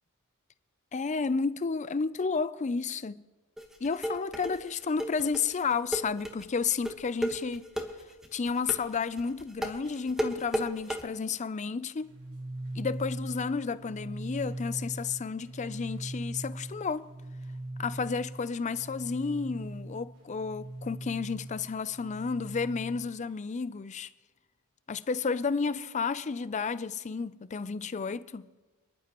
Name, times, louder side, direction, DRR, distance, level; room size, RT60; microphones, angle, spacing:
voice 1, 0.9-3.2 3.8-7.7 8.3-12.1 12.8-17.1 17.8-24.1 24.9-28.5, left 5 dB, 35° left, 0.4 m, -32 dB
sound 1, 3.6-11.0, equal, ahead, 1.3 m, -33 dB
sound 2, 12.0-23.0, right 1 dB, 70° right, 4.9 m, -40 dB
28.0 x 11.0 x 3.0 m
head